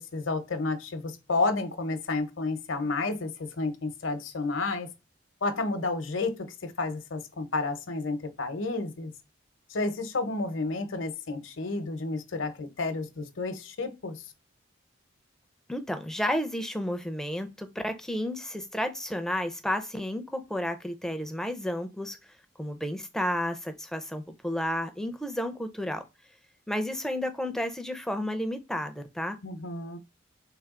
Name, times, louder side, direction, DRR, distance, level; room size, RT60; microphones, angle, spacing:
voice 1, 0.0-4.9 5.4-9.1 9.7-14.2 29.4-30.0, left 3 dB, 75° left, 0.8 m, -31 dB
voice 2, 15.7-22.2 22.6-26.0 26.7-29.4, left 1 dB, ahead, 0.4 m, -32 dB
3.4 x 3.3 x 3.6 m
head